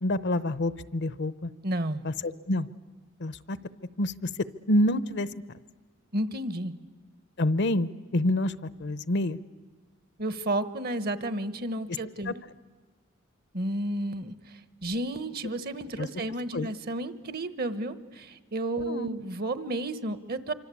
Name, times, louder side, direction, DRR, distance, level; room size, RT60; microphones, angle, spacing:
voice 1, 0.0-1.5 2.0-2.7 3.2-3.6 4.0-4.3 4.7-5.3 7.4-8.5 8.8-9.4 12.3-12.4 16.0-16.1 16.5-16.7 18.9-19.1, left 1 dB, 60° left, 17 dB, 0.8 m, -27 dB
voice 2, 1.6-2.0 6.1-6.7 10.2-12.3 13.5-20.5, right 1 dB, 50° right, 14 dB, 1.2 m, -32 dB
25.5 x 25.5 x 8.5 m, 1.3 s
head